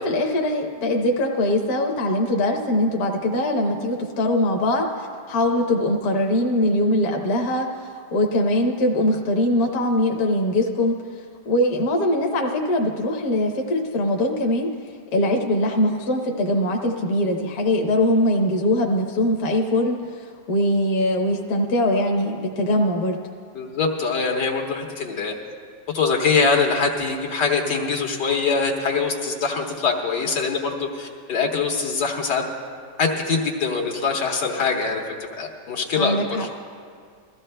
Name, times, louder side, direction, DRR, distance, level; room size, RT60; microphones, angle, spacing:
voice 1, 0.0-7.7 8.1-11.0 11.5-14.7 15.1-20.0 20.5-23.2 36.0-36.5, left 1 dB, 65° left, 1 dB, 1.3 m, -22 dB
voice 2, 23.5-25.3 25.9-32.4 33.0-35.0 35.4-36.5, left 4 dB, 80° left, 0 dB, 1.9 m, -23 dB
21.5 x 14.5 x 2.2 m, 2.1 s
omnidirectional pair, 1.8 m